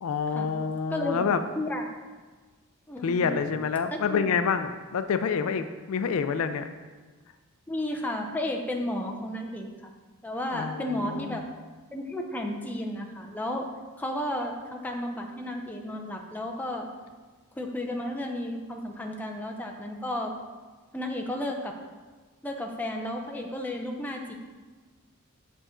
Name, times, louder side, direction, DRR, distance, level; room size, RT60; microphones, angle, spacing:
voice 1, 0.0-1.4 3.0-6.7 10.5-11.4, left 6 dB, 75° left, 10 dB, 0.4 m, -27 dB
voice 2, 0.9-1.2 1.6-1.9 2.9-3.3 3.9-4.3 6.0-6.3 7.7-9.9 10.2-11.4 11.9-13.7 14.0-16.9 17.6-20.3 20.9-21.7 22.4-24.3, left 1 dB, 10° left, 1 dB, 0.5 m, -33 dB
6.5 x 5.1 x 3.7 m, 1.4 s
head